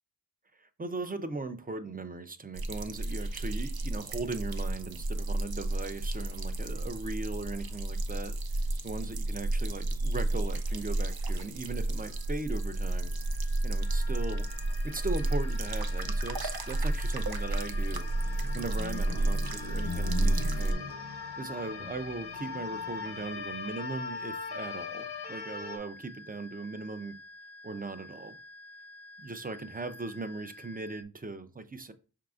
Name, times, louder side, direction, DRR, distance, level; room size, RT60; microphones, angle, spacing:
voice 1, 0.5-8.4 8.8-13.1 13.6-14.5 14.8-18.1 18.5-20.8 21.4-27.1 27.6-28.4 29.2-31.9, right 3 dB, 25° right, 0.5 m, -38 dB
sound 1, 2.6-20.7, right 2 dB, 65° right, 0.6 m, -31 dB
sound 2, 12.0-31.0, left 1 dB, 45° left, 0.4 m, -51 dB
sound 3, 12.7-12.8 13.1-13.2 13.7-25.8, left 5 dB, 90° left, 0.8 m, -41 dB
5.6 x 3.7 x 2.4 m
wide cardioid pair, 50°, 39 cm